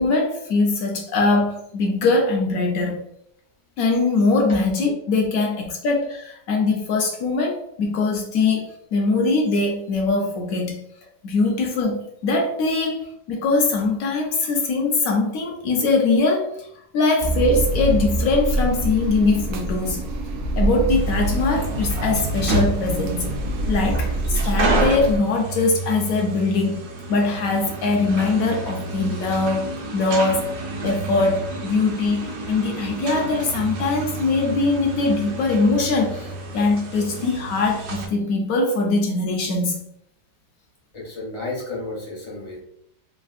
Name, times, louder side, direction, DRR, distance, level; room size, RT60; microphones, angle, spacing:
voice 1, 0.0-3.0 3.8-10.8 11.2-16.7 16.9-20.1 20.6-23.3 23.7-26.7 27.1-30.5 30.8-39.8, left 3 dB, 70° left, 2 dB, 0.8 m, -22 dB
sound 1, 17.2-25.2, right 2 dB, 90° right, 0.6 m, -25 dB
sound 2, 20.9-38.1, right 2 dB, 70° right, 1.2 m, -30 dB
voice 2, 40.9-42.6, left 2 dB, 40° left, -4 dB, 0.4 m, -32 dB
3.3 x 2.4 x 2.4 m, 0.73 s
omnidirectional pair, 1.9 m